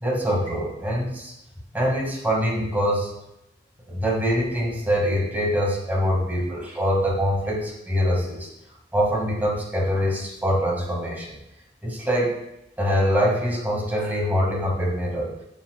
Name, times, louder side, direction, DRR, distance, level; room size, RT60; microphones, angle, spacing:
voice 1, 0.0-1.3 1.7-3.1 3.9-8.5 8.9-11.4 11.8-12.4 12.8-15.3, equal, 10° right, -3 dB, 2.1 m, -24 dB
12.0 x 7.3 x 2.4 m, 0.85 s
head